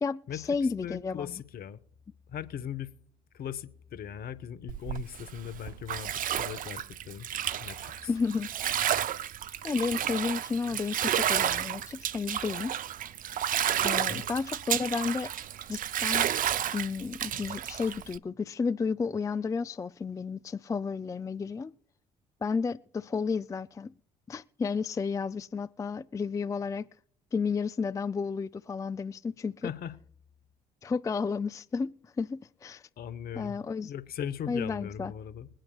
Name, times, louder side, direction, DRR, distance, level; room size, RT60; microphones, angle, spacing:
voice 1, 0.0-1.3 8.1-8.5 9.6-12.8 13.8-15.3 15.7-16.3 16.7-21.7 22.4-23.9 24.3-26.9 27.3-29.7 30.8-32.9 33.3-33.9 34.5-35.1, left 5 dB, 15° left, 0.3 m, -32 dB
voice 2, 0.8-1.8 2.3-2.9 3.3-8.1 14.1-14.2 29.6-30.0 33.0-35.5, left 9 dB, 55° left, 0.9 m, -39 dB
Bathtub (filling or washing), 4.7-18.2, right 10 dB, 45° right, 0.6 m, -31 dB
21.5 x 8.9 x 2.3 m
hypercardioid pair, 50°, 19 cm